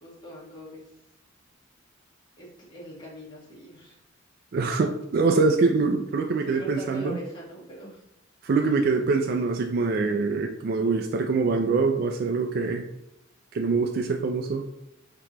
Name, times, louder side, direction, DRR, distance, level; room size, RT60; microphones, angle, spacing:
voice 1, 0.0-0.8 2.4-4.0 6.4-8.0, right 2 dB, 20° left, -5 dB, 1.4 m, -41 dB
voice 2, 4.5-7.2 8.4-12.8 13.5-14.7, right 4 dB, 50° right, 3 dB, 0.3 m, -24 dB
5.2 x 2.9 x 2.9 m, 0.86 s
head